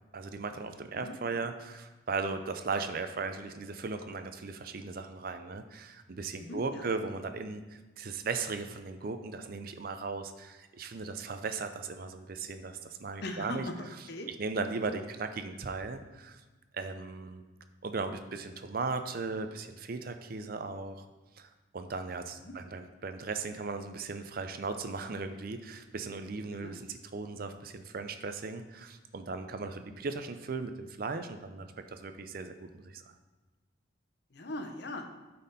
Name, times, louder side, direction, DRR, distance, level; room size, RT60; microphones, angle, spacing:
voice 1, 0.1-13.7 14.4-16.4 16.7-17.4 17.8-21.1 21.4-33.0, right 4 dB, 45° right, 8 dB, 0.5 m, -37 dB
voice 2, 1.0-1.4 6.4-6.8 13.2-14.3 22.4-22.6 26.5-26.8 34.3-35.0, left 1 dB, 55° left, 5 dB, 0.8 m, -40 dB
8.7 x 4.2 x 4.0 m, 1.2 s
head